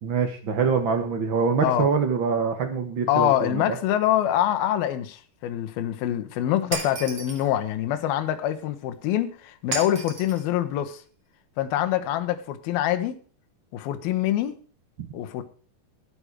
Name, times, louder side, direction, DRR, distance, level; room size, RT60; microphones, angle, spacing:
voice 1, 0.0-3.6, right 5 dB, 60° right, 1.2 m, -24 dB
voice 2, 3.1-11.0 11.6-13.2 13.7-14.6 15.1-15.4, left 12 dB, 70° left, 2.8 m, -25 dB
Shatter, 6.7-7.5 9.7-10.4, right 4 dB, 40° right, 3.0 m, -33 dB
11.5 x 10.5 x 4.7 m
omnidirectional pair, 4.7 m